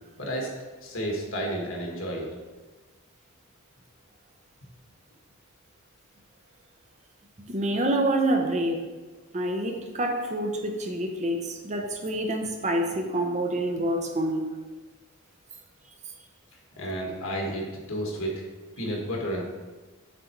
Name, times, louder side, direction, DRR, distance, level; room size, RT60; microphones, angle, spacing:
voice 1, 0.2-0.5 0.8-2.3 16.8-18.3 18.8-19.4, right 1 dB, 65° left, -1 dB, 1.6 m, -31 dB
voice 2, 7.5-8.8 9.3-14.4, right 1 dB, 35° right, 3 dB, 0.7 m, -27 dB
7.5 x 4.2 x 4.5 m, 1.2 s
head